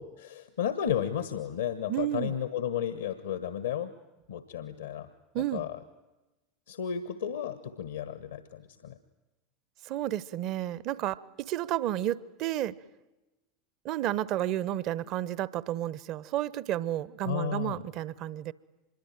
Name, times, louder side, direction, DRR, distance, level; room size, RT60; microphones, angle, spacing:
voice 1, 0.0-3.9 4.3-5.1 5.5-5.8 6.7-9.0 17.2-17.8, left 9 dB, 75° left, 12 dB, 1.3 m, -33 dB
voice 2, 1.9-2.3 5.3-5.6 9.8-12.7 13.8-18.5, right 12 dB, 50° right, 20 dB, 1.0 m, -31 dB
25.5 x 22.0 x 9.1 m, 1.1 s
figure-of-eight pair, 80°, 0 cm